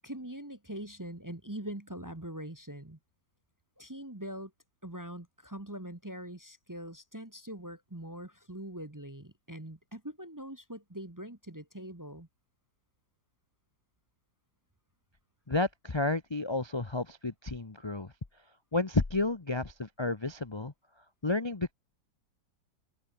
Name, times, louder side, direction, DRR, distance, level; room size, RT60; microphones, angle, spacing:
voice 1, 0.0-3.0 3.8-4.5 4.8-12.3, right 1 dB, 10° right, 1.1 m, -42 dB
voice 2, 15.5-18.1 18.7-20.7 21.2-21.7, left 2 dB, 20° left, 0.8 m, -31 dB
omnidirectional pair, 2.0 m